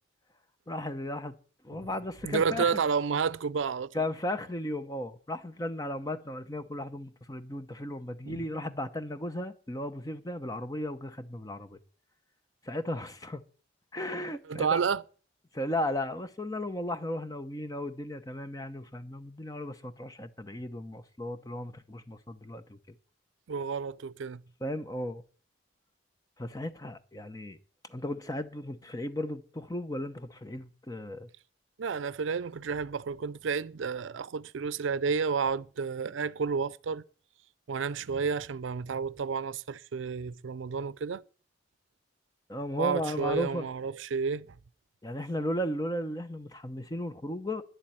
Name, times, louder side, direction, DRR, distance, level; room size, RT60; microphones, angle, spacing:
voice 1, 0.7-1.3 1.6-2.8 3.9-11.8 12.6-13.4 13.9-14.8 15.5-22.8 24.6-25.2 26.4-27.6 27.9-31.3 42.5-43.7 45.0-47.6, left 1 dB, 20° left, 0.7 m, -35 dB
voice 2, 2.2-3.9 8.3-8.5 14.5-15.0 23.5-24.4 31.8-37.0 37.7-41.2 42.8-44.5, right 5 dB, 85° right, 0.5 m, -31 dB
10.5 x 7.3 x 9.0 m
head